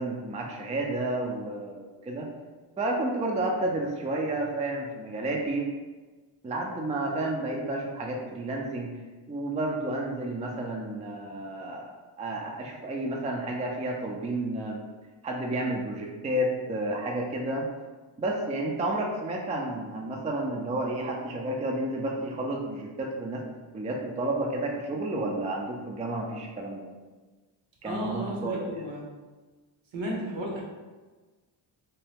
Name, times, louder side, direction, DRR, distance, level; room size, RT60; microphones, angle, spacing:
voice 1, 0.0-2.3 2.8-5.7 6.4-8.9 9.3-14.8 15.2-17.7 18.2-23.4 23.7-26.9 27.8-28.9, right 1 dB, 15° right, 0 dB, 0.4 m, -31 dB
voice 2, 27.8-29.0 29.9-30.6, right 1 dB, 65° right, -2 dB, 1.0 m, -33 dB
2.8 x 2.2 x 3.4 m, 1.3 s
cardioid pair, 75°, 50 cm